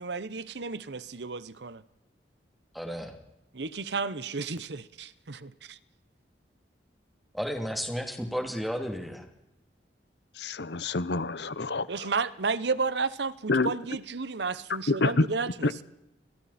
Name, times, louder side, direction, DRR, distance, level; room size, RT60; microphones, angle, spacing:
voice 1, 0.0-1.8 3.5-5.8 11.9-15.8, right 4 dB, 70° right, 0.9 m, -32 dB
voice 2, 2.7-3.1 7.3-9.2, equal, ahead, 2.9 m, -33 dB
voice 3, 10.4-12.1 13.5-13.7 14.9-15.3 15.6-15.7, left 3 dB, 70° left, 0.9 m, -27 dB
30.0 x 22.0 x 4.3 m
head